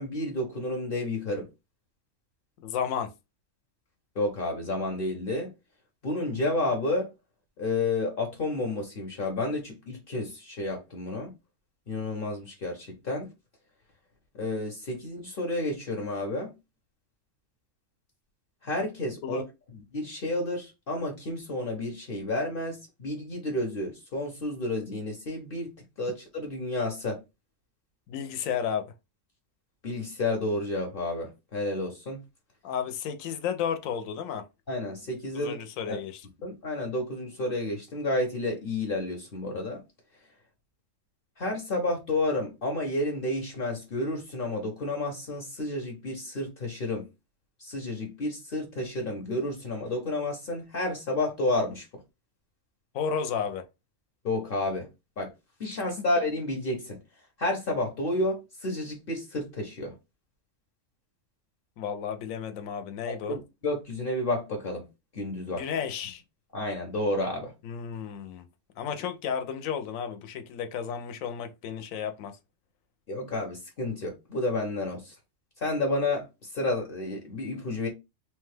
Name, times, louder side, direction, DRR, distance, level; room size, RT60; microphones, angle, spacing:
voice 1, 0.0-1.5 4.2-5.5 6.0-7.1 7.6-11.3 11.9-13.3 14.3-16.5 18.6-19.4 19.9-25.7 26.0-27.2 29.8-32.2 34.7-35.5 35.9-36.0 36.4-39.8 41.4-47.1 47.6-51.8 54.2-54.9 55.2-55.3 55.6-57.0 57.4-59.9 63.1-64.8 65.1-65.6 66.5-67.5 73.1-75.1 75.6-77.9, left 2 dB, 50° left, 0.8 m, -31 dB
voice 2, 2.6-3.1 19.2-19.4 28.1-28.9 32.6-34.4 35.3-36.3 52.9-53.6 61.8-63.4 65.5-66.2 67.6-68.5 68.8-72.3, left 7 dB, 85° left, 1.0 m, -32 dB
3.1 x 2.2 x 3.2 m
omnidirectional pair, 1.4 m